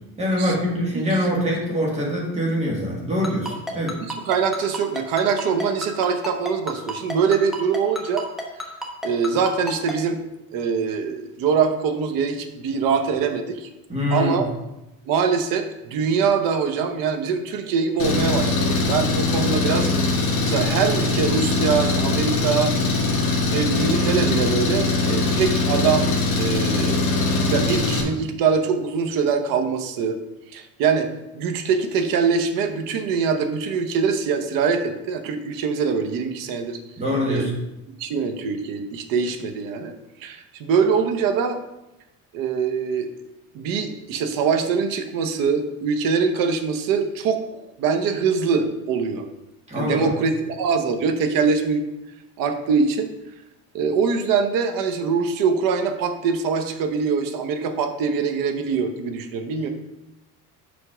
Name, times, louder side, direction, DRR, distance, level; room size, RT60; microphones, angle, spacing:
voice 1, 0.2-4.0 13.9-14.4 37.0-37.5 49.7-50.1, equal, 20° right, -3 dB, 1.8 m, -24 dB
Ringtone, 3.2-9.9, left 1 dB, ahead, 0.9 m, -30 dB
voice 2, 4.3-8.3 9.0-10.2 10.5-13.7 14.1-14.6 15.0-22.7 23.5-30.2 30.5-36.8 37.3-37.5 38.0-39.9 40.2-41.6 42.3-43.1 43.5-49.2 49.8-51.8 52.4-53.1 53.7-59.7, right 5 dB, 75° right, 6 dB, 1.0 m, -23 dB
Engine, 18.0-28.0, left 3 dB, 40° left, 1.6 m, -22 dB
5.7 x 5.2 x 4.9 m, 0.94 s
cardioid pair, 155°, 34 cm